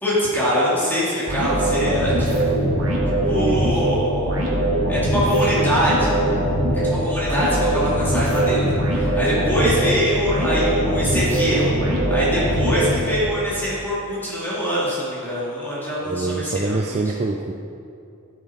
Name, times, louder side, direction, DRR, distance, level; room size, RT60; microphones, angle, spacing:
voice 1, 0.0-2.3 3.3-4.4 4.9-6.2 6.7-8.6 8.9-11.6 12.1-16.8, equal, 10° left, -9 dB, 2.6 m, -23 dB
sound 1, 1.3-13.5, right 1 dB, 65° right, 2.1 m, -21 dB
voice 2, 3.2-3.9 7.0-7.1 16.0-17.5, right 3 dB, 30° right, 3 dB, 0.4 m, -26 dB
14.0 x 7.1 x 4.3 m, 2.6 s
head